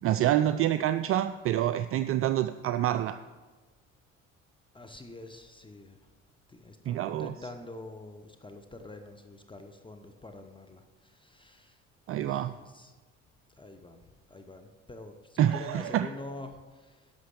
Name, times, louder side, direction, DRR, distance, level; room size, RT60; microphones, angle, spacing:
voice 1, 0.0-3.2 6.9-7.3 12.1-12.5 15.4-16.1, right 12 dB, 40° right, 11 dB, 0.4 m, -27 dB
voice 2, 4.7-6.1 6.5-11.8 12.2-12.9 13.6-17.1, left 2 dB, 15° left, 5 dB, 1.0 m, -46 dB
11.0 x 6.4 x 6.6 m, 1.3 s
figure-of-eight pair, 50°, 37 cm